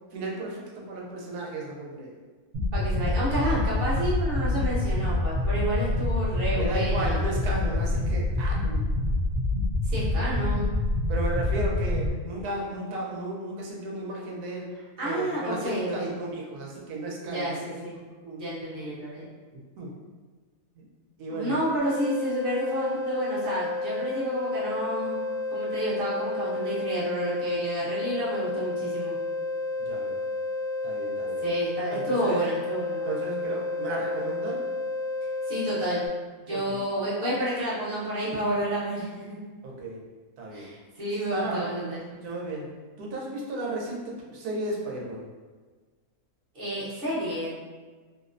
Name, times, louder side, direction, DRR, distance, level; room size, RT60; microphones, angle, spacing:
voice 1, 0.1-2.1 6.5-8.8 11.1-14.7 15.0-17.5 18.2-18.5 19.8-19.9 20.8-20.9 21.2-21.5 29.9-30.2 30.8-31.5 31.9-32.4 33.1-34.6 36.5-36.8 39.6-40.0 40.4-40.7 41.3-41.6 42.2-42.7 43.0-45.3, right 2 dB, 85° right, -2 dB, 1.1 m, -34 dB
sound 1, 2.5-12.1, left 2 dB, 70° right, 0.6 m, -26 dB
voice 2, 2.7-7.3 9.8-10.7 14.7-16.1 17.2-18.0 18.4-19.2 21.3-25.2 25.5-29.1 31.4-33.2 35.5-36.0 36.4-39.4 40.5-42.0 46.5-47.6, right 1 dB, 45° right, -9 dB, 1.0 m, -30 dB
sound 2, 21.8-36.1, left 3 dB, 50° left, 0.8 m, -31 dB
2.8 x 2.0 x 2.4 m, 1.4 s
omnidirectional pair, 1.6 m